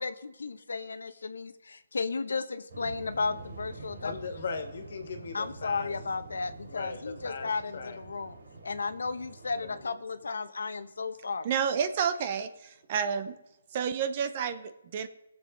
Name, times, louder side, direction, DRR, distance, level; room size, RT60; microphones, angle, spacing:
voice 1, 0.0-4.1 5.3-8.3 8.6-11.5, left 4 dB, 85° left, 10 dB, 0.9 m, -34 dB
Waves surf, 2.7-9.8, right 3 dB, 65° right, 4.3 m, -47 dB
voice 2, 4.0-5.9 6.6-8.0 9.6-10.0, left 5 dB, 55° left, 6 dB, 1.9 m, -39 dB
voice 3, 11.4-13.4 13.7-15.1, right 7 dB, 30° right, 11 dB, 0.8 m, -30 dB
18.5 x 7.4 x 3.9 m, 0.96 s
hypercardioid pair, 165°, 0 cm